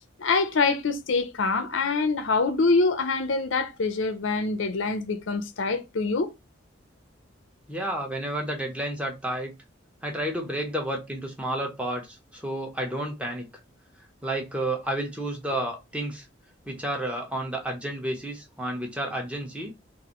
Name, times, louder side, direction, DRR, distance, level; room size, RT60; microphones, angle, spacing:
voice 1, 0.2-6.3, left 3 dB, 80° left, 0.6 m, -25 dB
voice 2, 7.7-9.5 10.0-13.5 14.2-16.2 16.7-19.7, right 1 dB, 5° right, 0.9 m, -31 dB
3.8 x 2.6 x 3.0 m
head